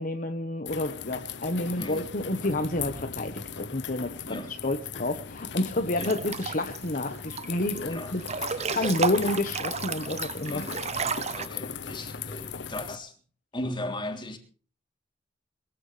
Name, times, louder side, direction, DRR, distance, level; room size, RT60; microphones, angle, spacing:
voice 1, 0.0-8.2 8.5-10.6, left 1 dB, 50° left, 1.3 m, -30 dB
sound 1, 0.7-13.0, left 7 dB, 80° left, 0.9 m, -38 dB
voice 2, 4.2-4.6 6.0-6.3 7.8-8.2 8.6-9.0 10.4-10.8 11.2-13.1 13.5-14.4, left 1 dB, 30° left, 3.4 m, -37 dB
Breathing / Bathtub (filling or washing) / Splash splatter, 6.0-6.8 7.1-7.8 8.2-11.5, right 5 dB, 40° right, 0.8 m, -32 dB
22.5 x 15.0 x 3.4 m
head